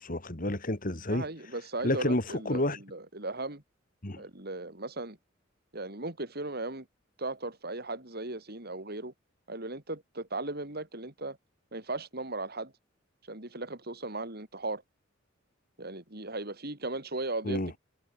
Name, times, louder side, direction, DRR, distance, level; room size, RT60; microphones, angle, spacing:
voice 1, 0.0-1.3 1.8-2.8 4.0-4.2 17.4-17.7, left 1 dB, 45° left, 2.6 m, -30 dB
voice 2, 1.1-3.6 4.2-5.2 5.7-6.9 7.2-9.1 9.5-11.4 11.7-12.7 13.3-14.8 15.8-17.8, right 2 dB, 50° right, 4.3 m, -37 dB
head